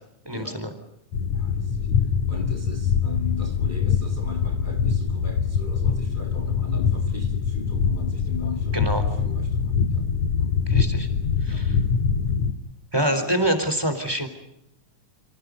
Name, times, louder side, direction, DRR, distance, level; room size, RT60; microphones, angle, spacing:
voice 1, 0.3-0.7 8.7-9.0 10.7-11.1 11.4-11.8 12.9-14.3, equal, 5° right, 3.7 m, -25 dB
sound 1, 1.1-12.5, left 6 dB, 65° left, 2.9 m, -24 dB
voice 2, 1.3-1.9 2.3-10.1 10.4-10.6 11.5-11.6 13.0-13.2, left 4 dB, 20° left, 1.4 m, -39 dB
29.0 x 27.0 x 5.3 m
omnidirectional pair, 3.8 m